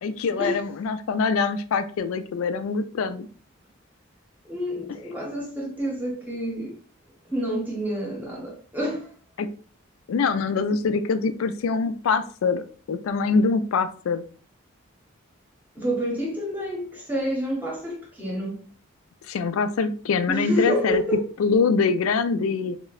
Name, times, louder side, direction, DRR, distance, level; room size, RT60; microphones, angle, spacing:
voice 1, 0.0-3.3 9.4-9.5 10.1-14.2 19.3-21.0 21.4-22.8, left 4 dB, 90° left, 0.3 m, -24 dB
voice 2, 4.4-6.8 7.3-9.1 15.8-18.6 20.3-21.2, equal, 10° right, 0.8 m, -28 dB
3.7 x 2.1 x 2.3 m
head